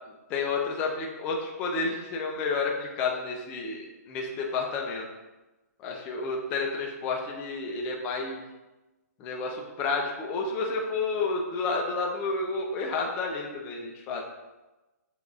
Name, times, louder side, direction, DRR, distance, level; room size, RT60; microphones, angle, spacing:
voice 1, 0.3-5.1 5.8-8.4 9.2-14.2, left 4 dB, 15° left, 0 dB, 0.4 m, -30 dB
6.6 x 2.5 x 2.4 m, 1.1 s
hypercardioid pair, 160°, 9 cm